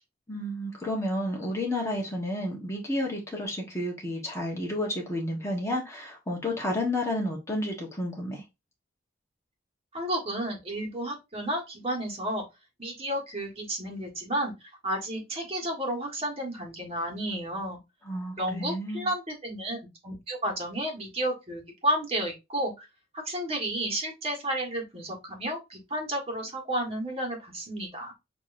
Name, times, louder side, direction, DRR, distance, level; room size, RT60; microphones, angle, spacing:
voice 1, 0.3-8.4 18.0-19.1, left 1 dB, 15° left, 1.2 m, -31 dB
voice 2, 9.9-12.4 12.8-14.5 14.8-17.8 18.4-22.8 23.1-28.1, right 1 dB, 30° right, 1.5 m, -32 dB
6.8 x 2.9 x 2.6 m
head